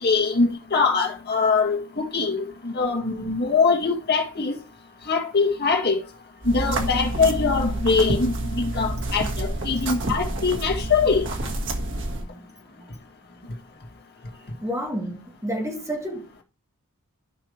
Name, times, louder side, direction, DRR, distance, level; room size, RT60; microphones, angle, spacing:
voice 1, 0.0-4.5 5.1-6.0 6.5-11.2, left 4 dB, 45° left, 1.9 m, -22 dB
sound 1, 6.4-12.2, right 2 dB, 60° right, 1.6 m, -28 dB
voice 2, 12.0-12.5 12.8-12.9 14.6-16.4, equal, 15° right, 1.8 m, -31 dB
12.5 x 5.7 x 3.2 m
head